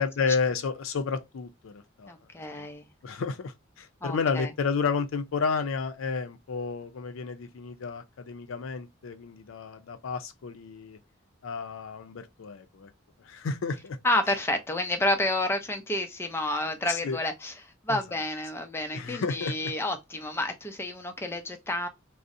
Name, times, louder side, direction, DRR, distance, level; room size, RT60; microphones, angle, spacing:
voice 1, 0.0-2.1 3.0-11.0 11.4-12.9 13.3-14.0 16.9-17.2 17.9-18.0 18.9-19.7, left 5 dB, 85° left, 0.4 m, -31 dB
voice 2, 2.1-2.9 4.0-4.5 14.0-17.5 17.8-21.9, left 1 dB, 10° left, 0.4 m, -30 dB
2.6 x 2.0 x 2.5 m
head